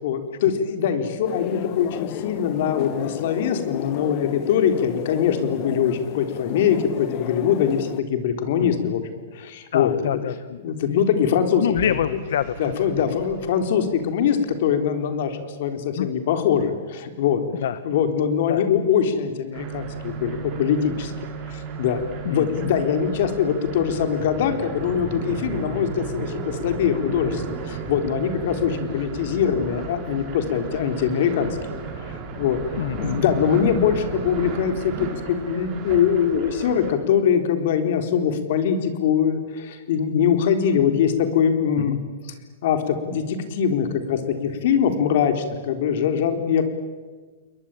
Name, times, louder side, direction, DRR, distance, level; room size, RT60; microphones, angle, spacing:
voice 1, 0.0-9.0 9.3-9.9 10.6-11.7 12.6-17.4 17.8-21.1 21.5-32.6 33.0-42.0 42.6-46.6, left 8 dB, 60° left, 7 dB, 3.8 m, -22 dB
sound 1, 1.2-8.0, left 12 dB, 40° left, 1.3 m, -32 dB
voice 2, 9.7-10.6 10.9-11.0 11.6-13.2 16.0-16.1 17.6-17.8 18.5-18.6 22.2-22.5 32.8-33.2 41.8-42.0, left 10 dB, 75° left, 14 dB, 1.2 m, -26 dB
Vehicle / Engine, 11.7-14.8, right 3 dB, 50° right, 7.2 m, -40 dB
sound 2, 19.5-36.9, right 5 dB, 30° right, 5.8 m, -34 dB
29.5 x 21.5 x 9.1 m, 1.4 s
hypercardioid pair, 150°, 0 cm